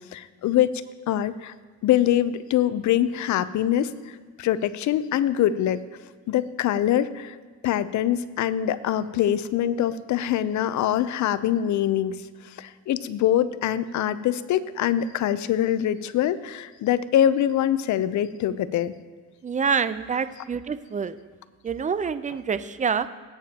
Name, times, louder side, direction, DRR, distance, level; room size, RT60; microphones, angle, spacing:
voice 1, 0.1-0.7 1.1-1.5 1.8-5.8 6.3-7.4 7.6-12.2 12.4-18.9, left 11 dB, 70° left, 15 dB, 0.6 m, -24 dB
voice 2, 19.4-21.1 21.6-23.1, right 6 dB, 25° right, 13 dB, 0.5 m, -26 dB
18.5 x 8.8 x 2.9 m, 1.5 s
cardioid pair, 90°, 30 cm